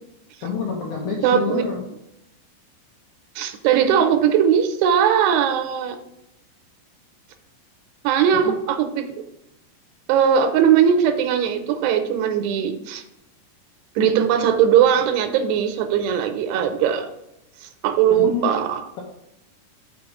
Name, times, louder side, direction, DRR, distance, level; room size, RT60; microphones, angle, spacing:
voice 1, 0.4-1.8 8.3-8.6 18.1-18.6, left 5 dB, 75° left, -2 dB, 1.8 m, -27 dB
voice 2, 1.2-1.7 3.4-6.0 8.0-9.1 10.1-13.0 14.0-17.1 17.8-18.8, right 8 dB, 85° right, 8 dB, 2.8 m, -19 dB
6.3 x 4.7 x 4.8 m, 0.84 s
omnidirectional pair, 4.7 m